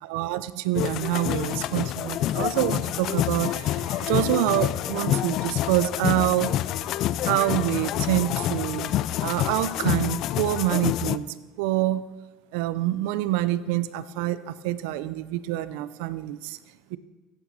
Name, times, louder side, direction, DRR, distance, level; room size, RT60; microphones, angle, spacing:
voice 1, 0.0-6.6 7.2-8.9 9.2-11.2 11.6-12.0 12.5-16.6 16.9-17.0, right 14 dB, 75° right, 15 dB, 0.6 m, -26 dB
sound 1, 0.7-11.2, left 13 dB, 50° left, 0.3 m, -27 dB
14.5 x 8.8 x 4.2 m, 1.3 s
supercardioid pair, 115°, 0 cm